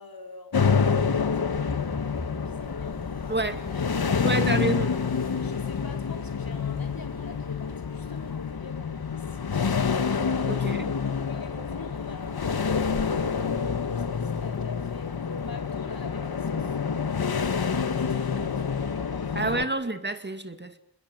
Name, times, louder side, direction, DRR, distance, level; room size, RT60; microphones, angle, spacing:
voice 1, 0.0-3.4 5.4-9.9 10.3-16.8 17.1-19.6, left 3 dB, 70° left, 4.8 m, -46 dB
sound 1, 0.5-19.7, left 6 dB, 85° left, 1.5 m, -28 dB
sound 2, 1.5-8.5, left 2 dB, 25° left, 4.4 m, -44 dB
voice 2, 3.3-3.6 4.2-5.0 10.5-10.9 19.3-20.8, right 2 dB, 30° right, 2.3 m, -29 dB
28.5 x 21.5 x 9.3 m
wide cardioid pair, 85°, 36 cm